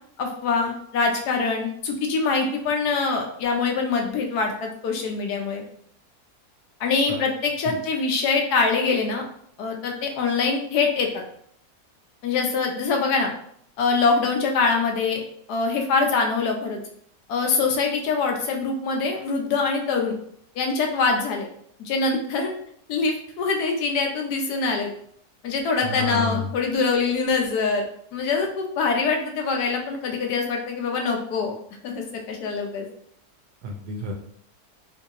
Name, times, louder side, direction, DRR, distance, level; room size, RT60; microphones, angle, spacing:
voice 1, 0.2-5.6 6.8-9.2 9.6-11.1 12.2-13.3 13.8-15.2 15.5-16.8 17.3-20.2 20.6-21.5 21.8-22.5 22.9-24.9 25.4-31.5 31.8-32.9, left 4 dB, 80° left, 2 dB, 1.2 m, -24 dB
voice 2, 25.8-26.5 33.6-34.1, left 1 dB, 80° right, 1 dB, 1.2 m, -30 dB
3.9 x 2.6 x 2.7 m, 0.65 s
omnidirectional pair, 1.7 m